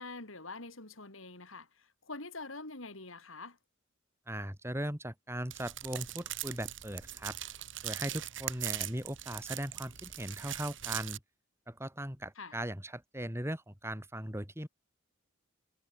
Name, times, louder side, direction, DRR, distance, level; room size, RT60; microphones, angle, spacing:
voice 1, 0.0-3.6 12.4-12.6, left 3 dB, 75° left, 4.3 m, -45 dB
voice 2, 4.3-7.4 7.8-11.2 11.7-14.7, right 1 dB, 10° right, 4.2 m, -39 dB
sound 1, 5.5-11.2, right 13 dB, 60° right, 4.3 m, -41 dB
head